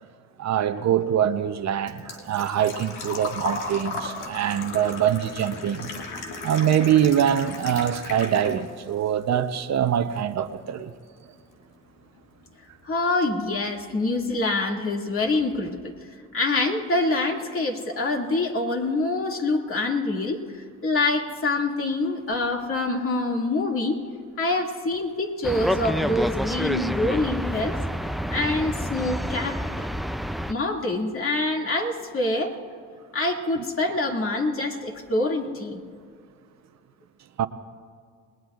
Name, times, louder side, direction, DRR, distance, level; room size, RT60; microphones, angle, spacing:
voice 1, 0.4-5.9 6.4-10.9 37.4-37.5, right 9 dB, 60° right, 9 dB, 0.9 m, -24 dB
Engine / Trickle dribble / Fill (with liquid), 0.9-8.9 9.2-10.2 10.5-10.6 12.5-12.6 12.7-13.1 13.5-13.6 13.8-13.9, left 3 dB, 85° left, 2.1 m, -36 dB
voice 2, 12.8-15.9 16.3-24.0 24.4-27.8 28.3-29.9 30.5-32.6 33.1-35.8, left 2 dB, 45° left, 1 dB, 2.4 m, -25 dB
sound 1, 25.4-30.5, equal, ahead, 0.4 m, -28 dB
28.5 x 20.0 x 2.5 m, 2.1 s
cardioid pair, 90°, 30 cm